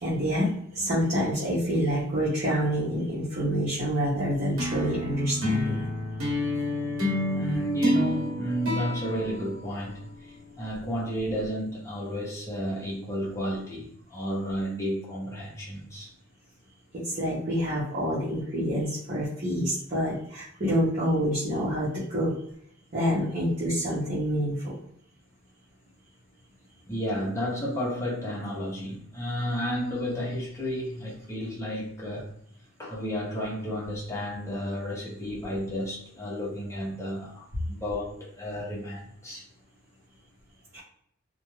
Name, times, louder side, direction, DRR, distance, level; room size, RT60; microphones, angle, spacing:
voice 1, 0.0-5.9 16.9-22.3 22.9-24.7 40.7-40.8, equal, 40° right, 0.9 m, -27 dB
sound 1, 4.6-10.2, left 1 dB, 80° right, 0.8 m, -30 dB
voice 2, 7.3-16.1 26.9-32.3 32.8-39.4, equal, 15° left, 0.8 m, -32 dB
2.5 x 2.2 x 3.0 m
head